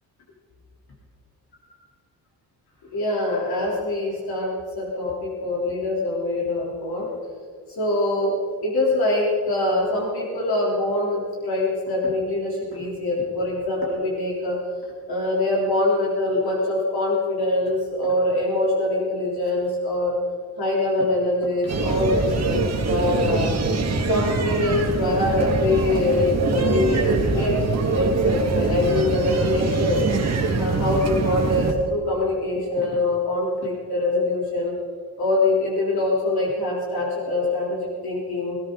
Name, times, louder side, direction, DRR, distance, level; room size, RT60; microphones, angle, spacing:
voice 1, 2.9-7.1 7.8-14.6 15.1-20.2 20.6-23.6 24.1-30.0 30.6-34.8 35.2-38.6, left 2 dB, 75° left, -4 dB, 3.6 m, -24 dB
sound 1, 21.7-31.7, right 3 dB, 45° right, 2.0 m, -23 dB
19.5 x 18.5 x 3.9 m, 2.1 s
wide cardioid pair, 150°, 38 cm